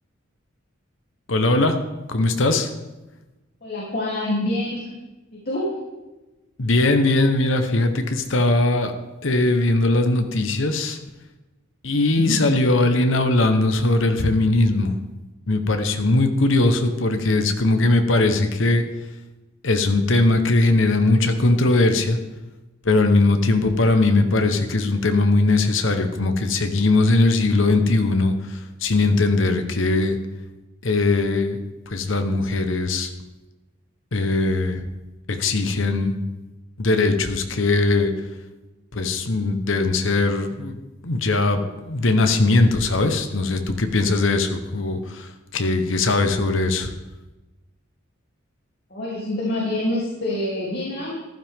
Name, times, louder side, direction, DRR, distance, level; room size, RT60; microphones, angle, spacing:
voice 1, 1.3-1.8 2.1-2.7 6.6-8.9 9.2-11.0 11.8-14.9 15.5-18.8 19.6-22.2 22.8-30.2 30.8-31.6 31.9-33.1 34.1-34.8 35.3-36.1 36.8-38.1 38.9-46.9, left 2 dB, 70° left, 7 dB, 1.1 m, -20 dB
voice 2, 3.6-4.9 5.3-5.7 12.2-12.4 48.9-51.1, left 1 dB, 50° left, -6 dB, 3.1 m, -26 dB
14.5 x 12.0 x 3.7 m, 1.1 s
head